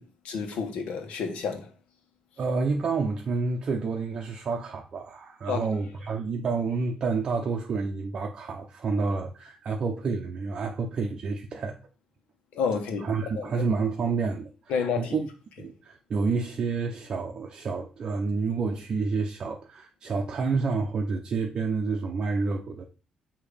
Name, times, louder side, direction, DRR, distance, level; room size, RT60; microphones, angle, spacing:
voice 1, 0.0-1.7 5.5-5.7 12.5-13.1 13.3-13.5 14.7-15.2, left 6 dB, 80° left, 1.3 m, -30 dB
voice 2, 2.4-11.8 13.0-15.3 15.6-22.8, right 4 dB, 40° right, 0.6 m, -29 dB
6.9 x 2.9 x 4.9 m
cardioid pair, 170°, 2 cm